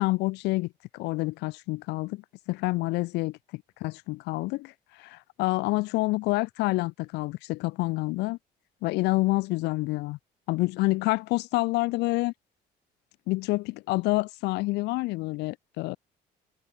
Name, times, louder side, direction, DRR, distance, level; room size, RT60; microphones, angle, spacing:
voice 1, 0.0-2.2 2.5-3.3 3.8-4.7 5.0-8.4 8.8-10.2 10.5-12.3 13.3-16.0, left 22 dB, 85° left, 0.5 m, -28 dB
cardioid pair, 110°, 17 cm